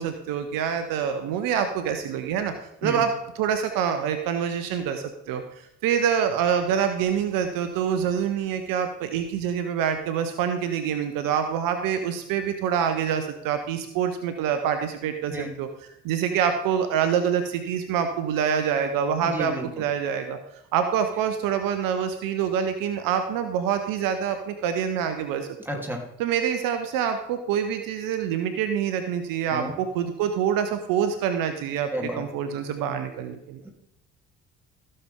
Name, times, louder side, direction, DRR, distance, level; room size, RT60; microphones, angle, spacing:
voice 1, 0.0-2.5 2.8-15.7 16.0-20.4 20.7-25.5 25.7-25.8 26.2-31.9 32.1-33.6, right 8 dB, 65° right, 8 dB, 1.0 m, -26 dB
voice 2, 19.2-19.8 25.6-26.0 29.5-29.7 31.9-32.2 33.6-33.7, equal, 5° right, 0 dB, 3.2 m, -31 dB
15.5 x 6.7 x 3.7 m, 0.82 s
figure-of-eight pair, 45°, 36 cm